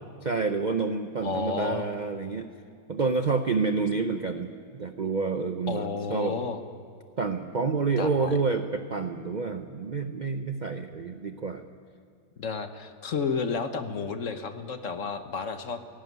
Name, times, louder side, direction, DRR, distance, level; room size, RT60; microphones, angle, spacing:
voice 1, 0.2-2.5 2.9-6.4 7.2-11.6, right 4 dB, 65° right, 7 dB, 0.4 m, -28 dB
voice 2, 1.2-1.9 5.7-6.6 8.0-8.4 12.4-15.8, left 5 dB, 50° left, 8 dB, 1.2 m, -31 dB
17.5 x 16.5 x 9.4 m, 2.3 s
omnidirectional pair, 1.9 m